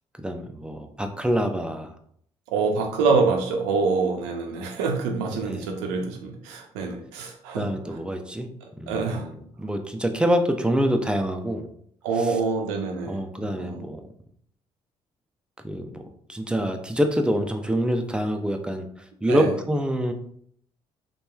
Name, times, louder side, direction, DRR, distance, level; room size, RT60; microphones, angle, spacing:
voice 1, 0.2-1.9 5.5-5.7 7.5-8.5 8.8-11.7 12.2-12.4 13.1-14.0 15.6-16.0 16.3-18.9 19.2-20.1, equal, 5° right, 5 dB, 0.4 m, -26 dB
voice 2, 2.5-7.7 8.9-9.3 12.0-13.2 13.5-13.8 19.3-19.5, right 4 dB, 85° right, 3 dB, 0.5 m, -25 dB
2.9 x 2.2 x 2.2 m, 0.65 s
hypercardioid pair, 55°, 14 cm